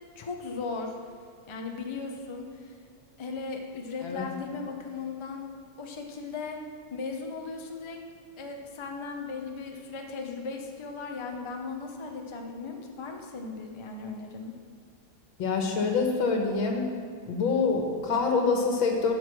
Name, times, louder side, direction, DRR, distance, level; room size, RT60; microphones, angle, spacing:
voice 1, 0.2-0.9 1.5-2.7 3.2-5.5 5.8-6.6 6.9-8.0 8.4-14.5, left 4 dB, 35° left, 2 dB, 0.4 m, -37 dB
voice 2, 15.4-16.9 17.3-19.1, left 4 dB, 90° left, 2 dB, 2.1 m, -26 dB
11.5 x 6.5 x 6.1 m, 2.1 s
omnidirectional pair, 2.1 m